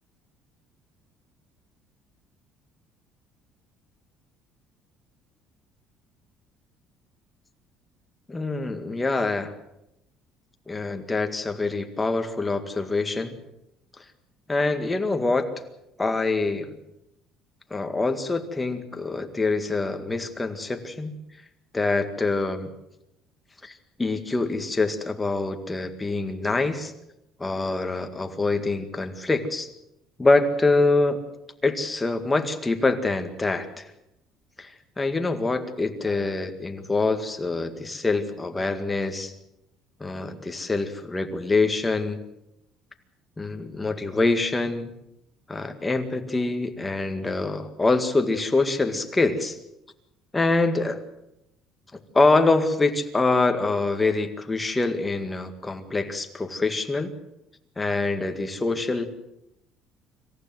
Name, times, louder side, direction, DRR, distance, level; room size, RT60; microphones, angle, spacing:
voice 1, 8.3-9.5 10.7-13.4 14.5-15.5 16.0-16.7 17.7-21.1 21.7-22.7 23.6-23.7 24.0-26.9 27.4-29.7 30.2-31.2 31.6-33.9 34.6-39.3 40.0-42.2 43.4-44.9 45.5-49.6 50.3-51.0 52.1-57.1 57.8-59.1, left 3 dB, 10° left, 6 dB, 1.9 m, -25 dB
26.5 x 15.0 x 7.7 m, 0.85 s
cardioid pair, 150°, 0 cm